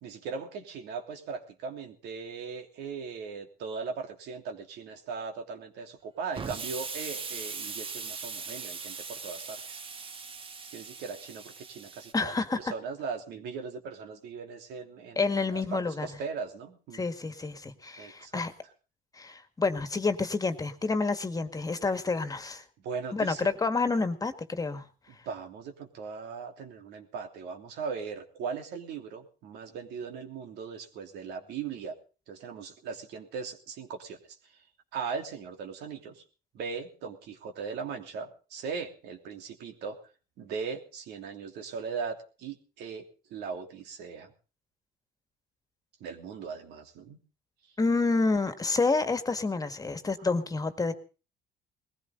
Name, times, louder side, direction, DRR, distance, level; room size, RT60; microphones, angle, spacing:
voice 1, 0.0-9.8 10.7-17.1 18.0-18.4 22.8-23.5 25.2-31.9 32.3-34.4 34.9-36.2 36.5-40.0 40.4-43.0 43.3-44.3 46.0-47.2, right 5 dB, 80° right, 4 dB, 3.1 m, -39 dB
Explosion, 6.3-12.1, right 5 dB, 30° right, 1.4 m, -40 dB
voice 2, 12.1-12.7 15.2-16.1 16.9-18.5 19.1-22.6 23.1-24.8 47.8-50.9, left 3 dB, 20° left, 9 dB, 1.8 m, -29 dB
20.5 x 15.5 x 3.9 m, 0.36 s
cardioid pair, 110°, 17 cm